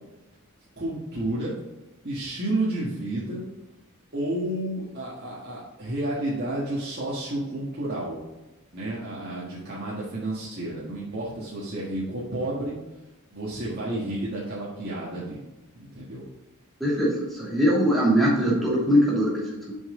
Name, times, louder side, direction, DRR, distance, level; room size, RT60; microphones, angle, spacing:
voice 1, 0.8-1.6 2.0-3.4 4.1-8.2 8.7-12.8 13.3-15.4 15.8-16.2, right 1 dB, 45° right, -8 dB, 1.8 m, -31 dB
voice 2, 16.8-19.8, equal, ahead, -6 dB, 2.7 m, -22 dB
7.1 x 5.7 x 3.9 m, 1.0 s
head